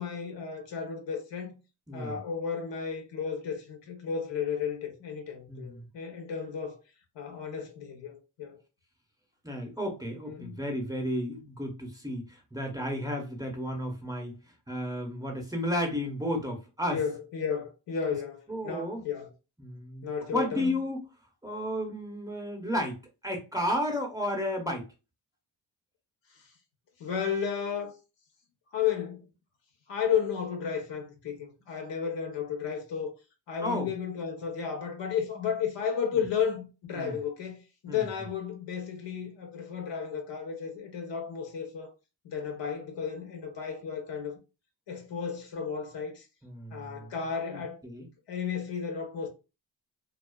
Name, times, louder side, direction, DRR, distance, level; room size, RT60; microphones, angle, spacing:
voice 1, 0.0-1.6 1.9-6.8 7.2-8.6 10.3-10.6 16.9-19.3 20.0-20.8 27.0-27.9 28.7-29.3 29.9-33.1 33.5-41.9 42.2-44.4 44.9-46.3 46.7-47.8 48.3-49.3, left 7 dB, 65° left, 0.9 m, -33 dB
voice 2, 1.9-2.2 5.5-5.9 9.4-14.4 14.7-17.0 18.0-18.1 18.5-19.0 19.6-21.0 21.4-24.9 33.6-33.9 36.9-37.2 37.9-38.0 46.4-47.1 47.5-48.1, equal, 10° right, 0.8 m, -33 dB
2.4 x 2.3 x 2.3 m
cardioid pair, 80°, 47 cm